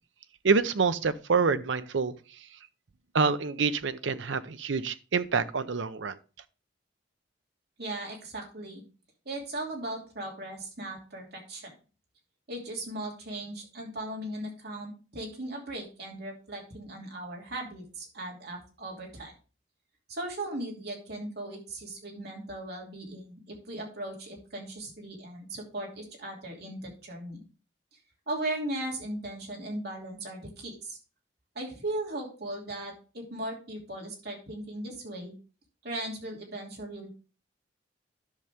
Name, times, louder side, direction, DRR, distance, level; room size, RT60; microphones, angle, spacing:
voice 1, 0.4-2.1 3.1-6.1, right 5 dB, 80° right, 13 dB, 0.7 m, -26 dB
voice 2, 7.8-8.8 9.2-11.7 12.5-19.3 20.1-27.4 28.3-31.0 31.5-35.3 35.8-37.1, right 1 dB, 60° right, -1 dB, 2.8 m, -38 dB
10.5 x 6.7 x 3.5 m, 0.35 s
head